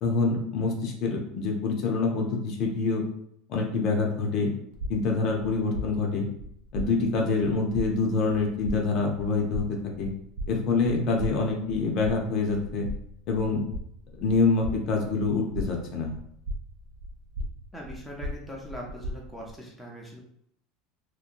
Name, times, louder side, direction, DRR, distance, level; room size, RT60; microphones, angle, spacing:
voice 1, 0.0-3.0 3.5-4.5 4.9-6.3 6.7-10.1 10.5-12.9 13.3-13.6 14.2-16.1, left 4 dB, 45° left, 1 dB, 0.6 m, -26 dB
sound 1, 4.7-19.5, equal, 70° right, 0.5 m, -39 dB
voice 2, 17.7-20.2, equal, ahead, -3 dB, 0.5 m, -41 dB
2.8 x 2.1 x 2.5 m, 0.69 s
supercardioid pair, 150°, 0 cm